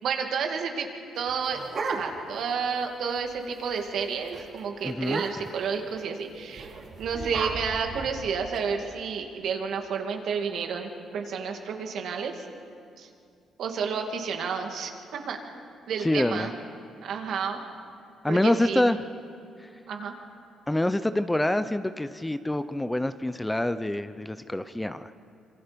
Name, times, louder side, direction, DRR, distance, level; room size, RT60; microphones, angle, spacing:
voice 1, 0.0-0.9 1.2-1.6 1.9-12.4 13.0-13.1 13.6-15.4 15.9-16.5 17.0-17.6 18.3-18.9 19.9-20.1, right 6 dB, 70° right, 3 dB, 2.4 m, -31 dB
sound 1, 1.2-2.4 2.8-2.9 3.2-3.5 3.8-4.0 4.3-4.5 5.0-5.6 6.5-8.6, right 4 dB, 50° right, 3.0 m, -35 dB
voice 2, 4.8-5.2 16.0-16.5 18.2-19.0 19.6-19.7 20.7-25.1, left 1 dB, 10° left, 12 dB, 0.7 m, -26 dB
26.5 x 25.5 x 5.3 m, 2.4 s
cardioid pair, 90°, 0 cm